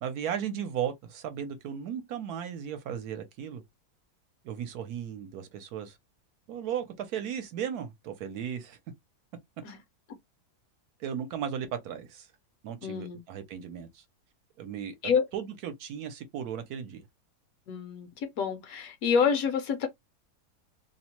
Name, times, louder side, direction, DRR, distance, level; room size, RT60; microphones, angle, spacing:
voice 1, 0.0-3.6 4.4-6.0 6.5-8.8 11.0-12.3 12.6-14.0 14.6-17.0, right 8 dB, 70° right, 1.1 m, -36 dB
voice 2, 12.8-13.2 15.0-15.2 17.7-19.9, left 6 dB, 65° left, 1.0 m, -28 dB
2.8 x 2.1 x 2.9 m
omnidirectional pair, 1.7 m